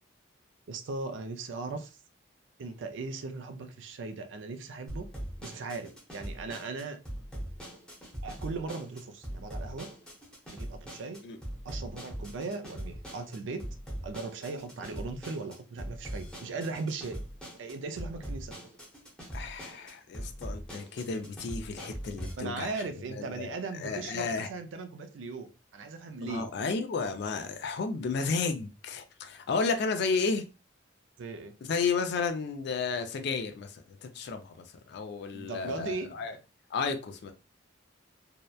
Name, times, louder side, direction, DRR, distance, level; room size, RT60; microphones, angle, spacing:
voice 1, 0.7-1.9 2.6-5.1 5.4-7.0 8.2-9.9 10.5-11.2 11.6-13.7 14.0-17.2 17.6-18.5 22.4-26.4 31.2-31.6 35.3-36.1, right 3 dB, 75° right, 0.4 m, -38 dB
sound 1, 4.9-22.3, equal, 5° left, 0.8 m, -41 dB
voice 2, 19.3-24.5 26.2-30.4 31.6-36.4 36.7-37.3, left 4 dB, 60° left, 0.4 m, -33 dB
2.8 x 2.1 x 2.2 m
head